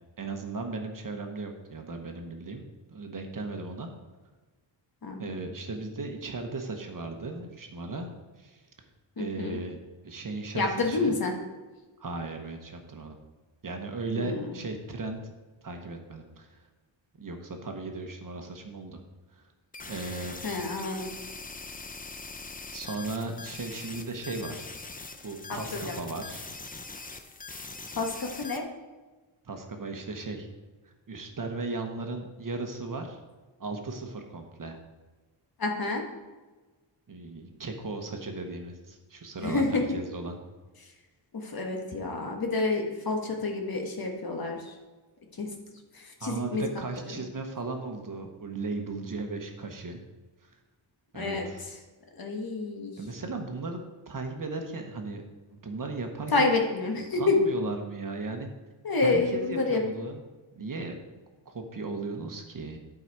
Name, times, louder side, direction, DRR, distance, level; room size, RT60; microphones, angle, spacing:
voice 1, 0.2-3.9 5.2-8.1 8.4-8.6 9.2-9.8 10.0-11.1 12.0-13.1 13.6-15.2 15.6-16.7 17.2-19.0 19.3-19.4 19.9-20.3 22.7-24.7 25.2-26.4 29.4-30.5 31.1-33.2 33.6-34.8 37.1-40.3 46.2-50.0 50.4-50.5 51.1-51.6 53.0-53.8 54.1-55.2 55.5-56.5 57.2-58.5 59.0-60.2 60.5-61.0 61.5-62.8, right 3 dB, 45° right, 4 dB, 1.0 m, -36 dB
voice 2, 9.2-9.6 10.5-11.3 14.2-14.6 20.4-21.1 25.5-25.9 28.0-28.6 35.6-36.0 39.4-39.8 41.3-44.7 45.4-45.5 45.9-46.7 47.1-47.2 51.1-51.5 52.2-52.9 56.3-57.4 58.8-59.8, left 3 dB, 50° left, 2 dB, 1.3 m, -28 dB
sound 1, 19.7-28.6, left 3 dB, 20° left, 0.5 m, -42 dB
11.5 x 4.9 x 4.6 m, 1.3 s
wide cardioid pair, 170°, 46 cm